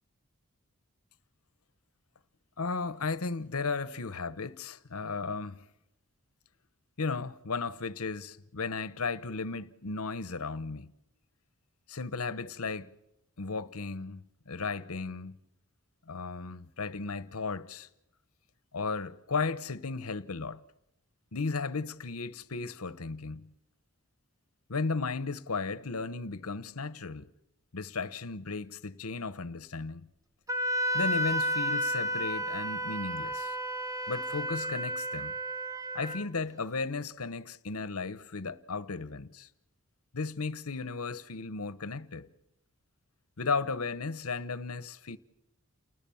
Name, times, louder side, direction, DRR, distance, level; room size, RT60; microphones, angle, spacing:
voice 1, 2.6-5.6 7.0-10.9 11.9-12.9 13.4-15.4 16.1-17.9 18.7-20.6 21.3-23.5 24.7-27.3 27.7-30.1 30.9-33.5 34.1-35.3 35.9-39.5 40.1-42.3 43.4-45.2, left 4 dB, 75° left, 1.0 m, -35 dB
Wind instrument woodwind instrument, 30.5-36.3, equal, 15° right, 1.1 m, -32 dB
29.5 x 20.0 x 7.2 m
head